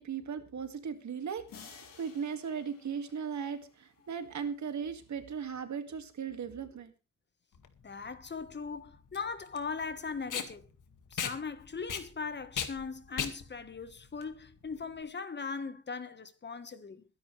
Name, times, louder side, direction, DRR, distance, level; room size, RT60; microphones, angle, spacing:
voice 1, 0.0-6.9, right 6 dB, 60° right, 2.2 m, -37 dB
sound 1, 1.5-4.0, left 7 dB, 85° left, 3.2 m, -54 dB
Packing tape duct tape, 7.5-15.0, left 7 dB, 65° left, 2.0 m, -39 dB
voice 2, 7.8-10.6 11.1-17.0, left 5 dB, 35° left, 1.4 m, -39 dB
22.5 x 11.0 x 3.3 m
cardioid pair, 120°, 33 cm